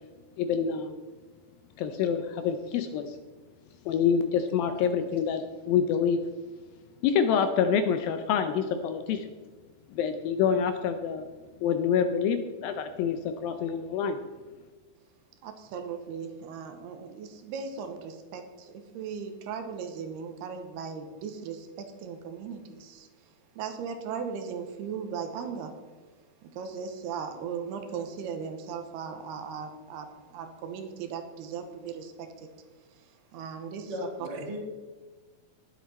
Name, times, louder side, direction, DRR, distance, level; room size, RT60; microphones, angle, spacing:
voice 1, 0.4-0.9 1.8-3.2 3.9-6.2 7.0-9.3 9.9-11.2 11.6-14.2, left 7 dB, 80° left, 8 dB, 2.2 m, -27 dB
voice 2, 15.4-23.1 23.6-25.7 26.4-32.5 33.3-33.9 34.2-34.5, right 6 dB, 85° right, 6 dB, 3.0 m, -38 dB
voice 3, 33.9-34.6, equal, 55° right, -5 dB, 5.2 m, -36 dB
18.5 x 7.6 x 4.2 m, 1.4 s
omnidirectional pair, 4.6 m